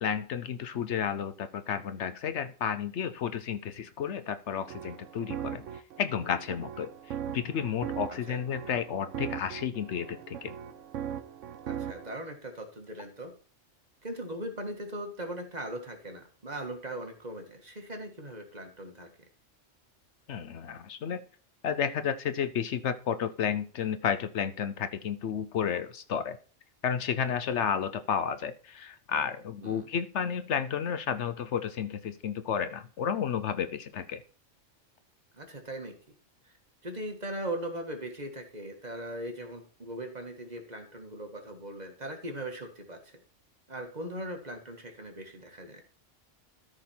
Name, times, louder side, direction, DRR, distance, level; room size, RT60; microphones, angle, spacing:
voice 1, 0.0-5.7 6.0-6.9 7.3-10.5 20.3-21.2 21.6-26.4 26.8-34.2, left 8 dB, 70° left, 12 dB, 1.0 m, -32 dB
sound 1, 4.5-12.2, right 9 dB, 85° right, 1.0 m, -39 dB
voice 2, 11.7-13.3 14.0-19.1 29.6-29.9 35.4-36.0 36.8-43.0 43.7-45.8, right 1 dB, 35° right, 3 dB, 1.7 m, -39 dB
13.0 x 5.2 x 4.4 m, 0.40 s
omnidirectional pair, 1.3 m